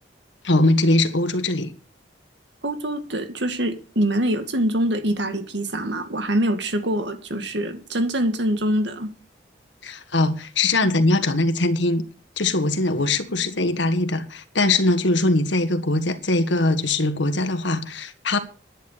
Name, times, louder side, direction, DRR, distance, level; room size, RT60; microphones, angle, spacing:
voice 1, 0.4-1.7 9.8-12.0 12.4-18.4, left 2 dB, 80° left, 1.7 m, -21 dB
voice 2, 2.6-9.1, right 1 dB, 75° right, 2.0 m, -24 dB
10.5 x 10.5 x 6.7 m
head